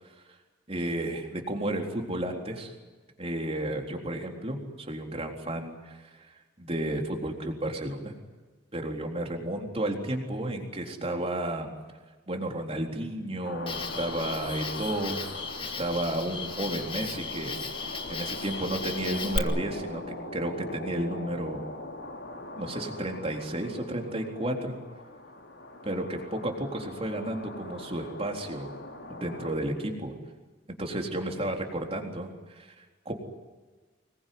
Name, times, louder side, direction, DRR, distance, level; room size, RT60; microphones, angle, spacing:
voice 1, 0.7-2.7 3.2-6.3 6.6-8.1 8.7-11.7 12.3-15.2 15.6-20.0 20.3-21.6 22.6-24.7 25.8-28.7 29.1-30.1 30.8-33.1, right 1 dB, 30° right, 2 dB, 3.9 m, -32 dB
sound 1, 13.4-29.6, left 2 dB, 80° left, 5.1 m, -41 dB
Cricket, 13.7-19.4, left 4 dB, 30° left, 1.9 m, -36 dB
26.0 x 21.5 x 9.5 m, 1.3 s
head